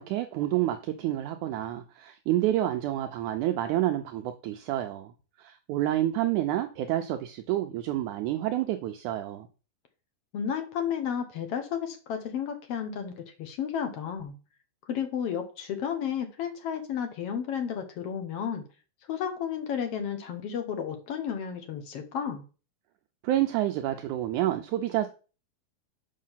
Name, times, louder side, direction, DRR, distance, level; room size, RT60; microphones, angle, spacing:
voice 1, 0.0-5.1 5.4-9.5 23.2-25.1, right 13 dB, 80° right, 1.8 m, -28 dB
voice 2, 10.3-14.3 14.9-18.6 19.1-22.4, left 8 dB, 75° left, 1.4 m, -32 dB
7.5 x 5.6 x 5.6 m
omnidirectional pair, 4.1 m